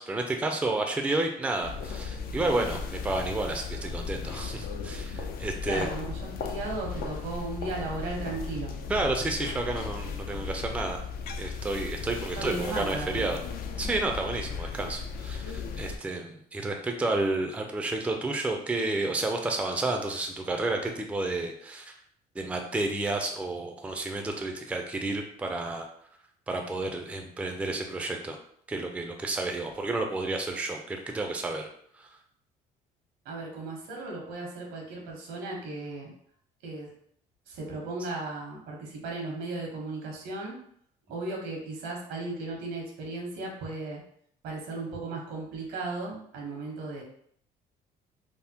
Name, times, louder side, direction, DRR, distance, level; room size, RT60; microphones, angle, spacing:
voice 1, 0.0-5.9 8.9-11.0 11.4-13.4 13.8-21.9 22.3-25.9 26.5-28.4 28.7-31.7 31.9-32.2, right 2 dB, 5° right, 3 dB, 0.4 m, -31 dB
sound 1, 1.6-16.0, left 5 dB, 65° left, 0.4 m, -36 dB
voice 2, 5.6-8.7 12.3-13.4 33.2-36.1 36.6-36.9 37.5-40.6 41.1-44.0 44.4-47.0, right 2 dB, 85° right, -1 dB, 1.0 m, -36 dB
3.4 x 2.0 x 2.8 m, 0.66 s
cardioid pair, 110°, 17 cm